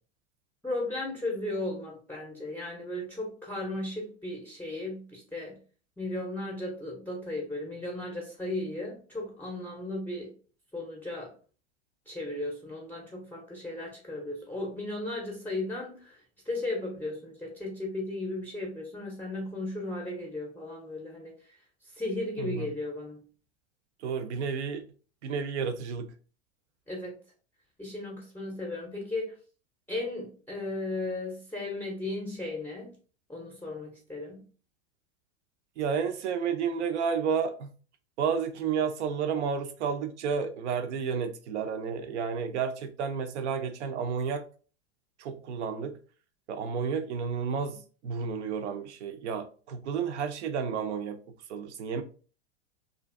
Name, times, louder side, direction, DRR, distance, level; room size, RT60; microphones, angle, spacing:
voice 1, 0.6-5.6 6.0-10.3 10.7-11.3 12.1-16.2 16.5-21.3 21.9-23.2 26.9-27.2 27.8-29.3 29.9-32.9 33.3-34.5, left 2 dB, 5° left, 0.5 m, -35 dB
voice 2, 24.0-24.8 25.2-26.1 35.8-37.7 38.2-44.4 45.2-46.0 46.5-51.2 51.5-52.0, right 6 dB, 80° right, 0.6 m, -31 dB
2.5 x 2.4 x 2.4 m
hypercardioid pair, 115°, 34 cm